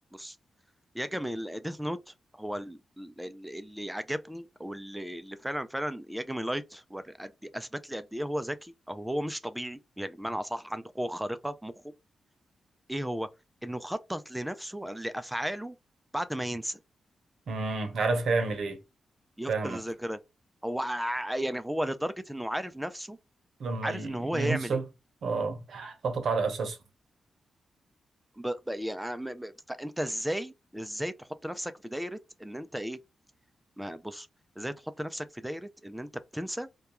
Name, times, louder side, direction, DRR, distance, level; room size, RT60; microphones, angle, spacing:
voice 1, 0.9-11.7 12.9-13.3 13.6-15.8 16.1-16.8 19.4-20.2 20.6-23.2 23.8-24.8 28.4-33.0 33.8-34.3 34.6-36.7, equal, 5° right, 0.3 m, -35 dB
voice 2, 17.5-18.8 19.5-19.8 23.6-24.8 25.2-26.8, right 4 dB, 70° right, 0.7 m, -30 dB
2.3 x 2.2 x 2.9 m
cardioid pair, 90°, 0 cm